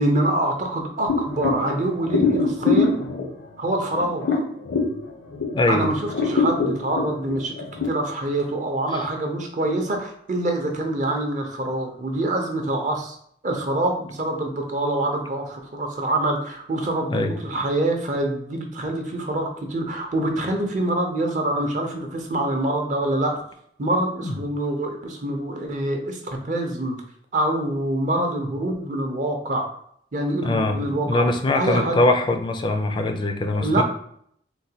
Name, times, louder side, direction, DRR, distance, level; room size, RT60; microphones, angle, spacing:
voice 1, 0.0-3.0 3.6-4.4 5.7-13.2 13.4-23.4 23.8-27.0 27.3-29.7 30.1-31.3 31.5-32.0 33.6-33.8, right 1 dB, 45° right, 3 dB, 0.6 m, -25 dB
sound 1, 1.1-5.7 6.0-7.9, left 4 dB, 75° left, 0.7 m, -24 dB
voice 2, 5.5-5.9 8.9-9.0 17.1-17.3 24.2-24.3 30.3-30.8 31.0-33.8, left 2 dB, 25° left, 6 dB, 0.3 m, -22 dB
3.8 x 2.2 x 2.8 m, 0.66 s
head